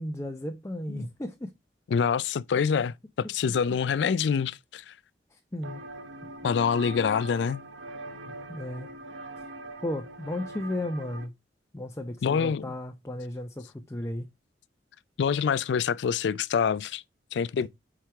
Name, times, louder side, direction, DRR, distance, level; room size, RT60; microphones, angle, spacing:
voice 1, 0.0-1.5 5.3-5.8 8.3-8.9 9.8-11.3 11.7-14.3 17.6-17.7, left 1 dB, 15° left, 0.5 m, -34 dB
voice 2, 1.9-4.9 6.4-7.6 12.2-12.6 15.2-17.0 17.3-17.7, left 6 dB, 75° left, 0.3 m, -26 dB
sound 1, 5.6-11.3, right 2 dB, 90° right, 0.7 m, -42 dB
4.9 x 4.5 x 4.5 m
head